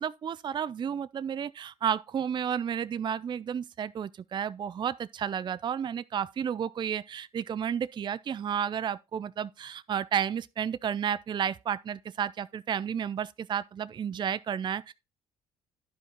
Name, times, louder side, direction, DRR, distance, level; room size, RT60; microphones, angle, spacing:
voice 1, 0.0-14.9, right 8 dB, 35° right, 0.4 m, -32 dB
10.5 x 5.1 x 3.8 m
hypercardioid pair, 60°, 14 cm